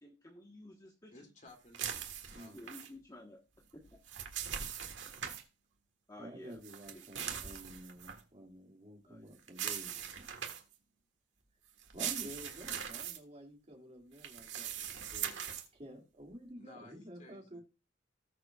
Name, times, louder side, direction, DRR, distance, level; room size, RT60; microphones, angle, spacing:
voice 1, 0.0-1.1 2.5-3.4 3.7-4.0 6.1-6.6 6.9-7.0 9.1-9.2, left 1 dB, 20° left, 0 dB, 1.4 m, -53 dB
voice 2, 1.1-2.6 16.6-17.6, left 2 dB, 40° left, 2 dB, 2.9 m, -57 dB
sound 1, 1.7-2.9 3.8-5.4 6.6-8.2 9.5-10.7 11.8-13.2 14.2-15.7, right 8 dB, 70° right, 1.7 m, -41 dB
voice 3, 2.3-2.6 6.2-10.1 11.9-15.4 15.7-17.6, equal, 35° right, 2 dB, 2.4 m, -50 dB
19.0 x 6.7 x 2.5 m, 0.29 s
head